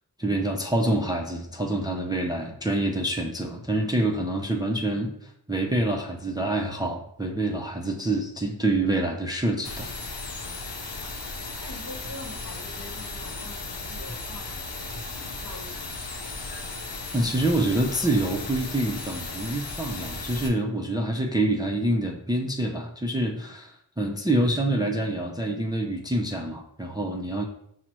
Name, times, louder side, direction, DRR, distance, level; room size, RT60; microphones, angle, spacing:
voice 1, 0.2-9.9 16.5-16.7 17.1-27.5, right 1 dB, 10° right, 1 dB, 0.4 m, -26 dB
sound 1, 9.6-20.5, left 3 dB, 75° left, 0.7 m, -36 dB
voice 2, 11.6-16.0, left 1 dB, 55° left, 1 dB, 1.0 m, -45 dB
5.8 x 2.0 x 2.9 m, 0.72 s
cardioid pair, 45°, 41 cm